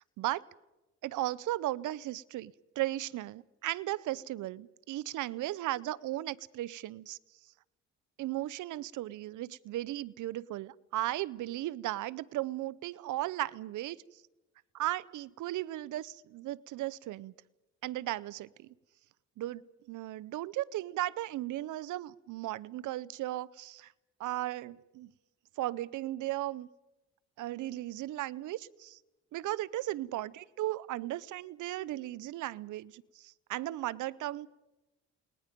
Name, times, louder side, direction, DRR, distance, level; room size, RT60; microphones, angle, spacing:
voice 1, 1.0-7.2 8.2-14.0 14.7-17.3 17.8-18.7 19.4-23.9 24.2-25.1 25.6-26.7 27.4-29.0 29.3-34.5, right 15 dB, 80° right, 21 dB, 0.7 m, -36 dB
29.0 x 20.5 x 5.2 m, 1.0 s
cardioid pair, 90°, 30 cm